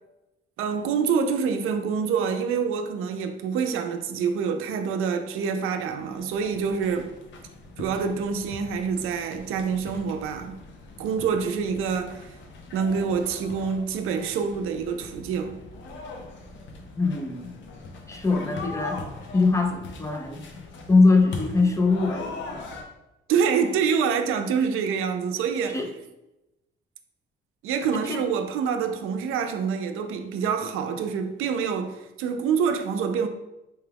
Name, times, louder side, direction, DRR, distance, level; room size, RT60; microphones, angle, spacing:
voice 1, 0.6-7.2 7.8-10.6 11.0-12.4 12.7-15.6 23.3-25.8 27.6-33.3, right 6 dB, 85° right, 0.4 m, -26 dB
sound 1, 5.9-22.8, left 3 dB, 65° left, 0.6 m, -41 dB
voice 2, 17.0-17.5 18.1-19.0 19.3-20.4 20.9-22.6 25.7-25.9 28.0-28.2, left 3 dB, 15° left, 0.4 m, -22 dB
4.3 x 2.3 x 3.3 m
cardioid pair, 145°, 21 cm